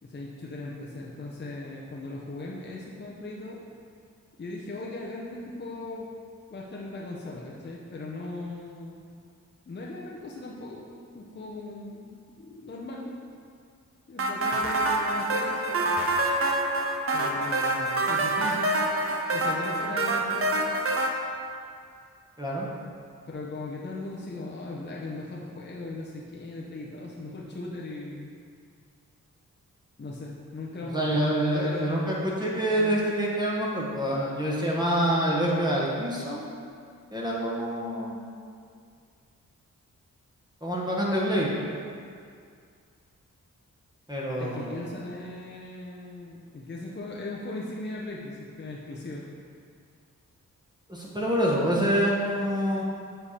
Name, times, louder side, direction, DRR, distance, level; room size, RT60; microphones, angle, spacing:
voice 1, 0.0-3.6 4.4-6.1 6.5-9.0 9.7-13.1 14.1-15.9 17.1-18.8 19.3-20.7 23.3-28.3 30.0-31.2 31.5-31.9 32.7-33.0 44.4-49.2, left 2 dB, 30° left, -3 dB, 0.7 m, -38 dB
sound 1, 14.2-21.1, right 2 dB, 40° right, 0.7 m, -26 dB
voice 2, 30.9-36.5 37.1-38.2 40.6-41.5 44.1-44.7 50.9-52.8, equal, 15° right, -5 dB, 1.1 m, -26 dB
7.1 x 3.4 x 4.2 m, 2.3 s
cardioid pair, 55°, 33 cm